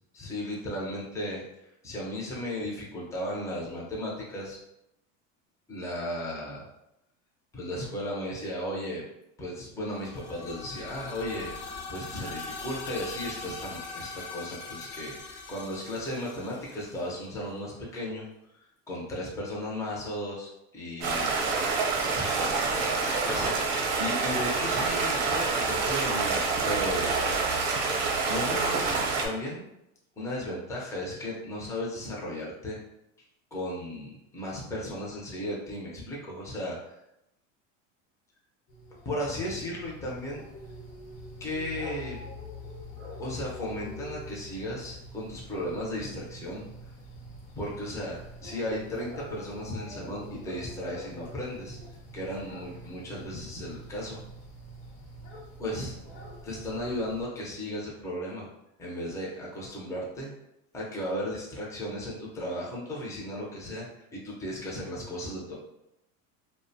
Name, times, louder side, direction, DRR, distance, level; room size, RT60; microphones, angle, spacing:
voice 1, 0.1-4.6 5.7-6.6 7.5-9.0 9.4-11.5 11.9-18.3 18.9-21.4 22.2-27.2 28.2-29.6 30.2-32.8 33.5-37.0 39.0-40.4 41.4-42.2 43.2-46.6 47.6-51.8 52.1-54.2 55.6-55.9 56.4-58.5 58.8-60.3 60.7-65.5, left 1 dB, 10° left, -4 dB, 0.5 m, -35 dB
sound 1, 9.9-17.7, left 4 dB, 55° left, 0.6 m, -41 dB
Stream, 21.0-29.3, right 4 dB, 55° right, 0.7 m, -27 dB
sound 2, 38.7-57.2, equal, 80° left, 0.9 m, -45 dB
2.5 x 2.1 x 2.6 m, 0.84 s
supercardioid pair, 130°, 38 cm